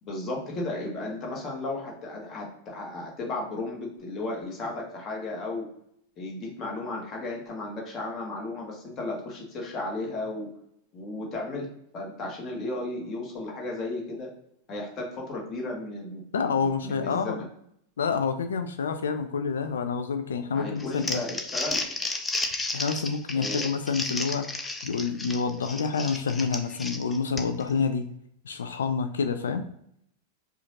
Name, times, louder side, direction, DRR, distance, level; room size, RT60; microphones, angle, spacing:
voice 1, 0.0-5.6 6.2-10.5 10.9-11.7 11.9-14.3 14.7-17.4 20.5-21.8 23.3-23.7, left 2 dB, 30° left, -1 dB, 1.5 m, -34 dB
voice 2, 16.3-17.4 18.0-21.2 22.7-24.5 24.8-28.0 28.4-29.6, left 5 dB, 65° left, 8 dB, 0.4 m, -28 dB
Crumpling crinkling, 20.8-27.7, left 2 dB, 15° left, 0.5 m, -32 dB
4.8 x 2.5 x 2.9 m, 0.72 s
figure-of-eight pair, 90°, 0 cm